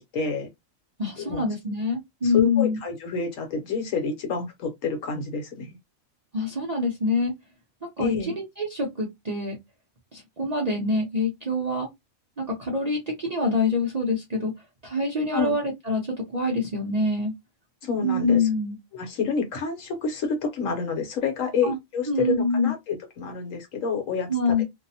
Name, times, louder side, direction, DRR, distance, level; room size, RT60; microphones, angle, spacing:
voice 1, 0.1-0.5 1.2-1.4 2.2-5.8 8.0-8.3 15.3-15.6 17.8-18.5 18.9-24.6, left 5 dB, 70° left, 1.2 m, -28 dB
voice 2, 1.0-2.8 6.3-7.3 8.0-9.6 10.1-11.9 12.4-14.5 14.8-16.0 16.3-17.3 18.0-18.8 21.6-21.8 22.1-22.7 24.3-24.6, left 2 dB, 45° right, 0.5 m, -25 dB
2.7 x 2.0 x 2.7 m
omnidirectional pair, 1.5 m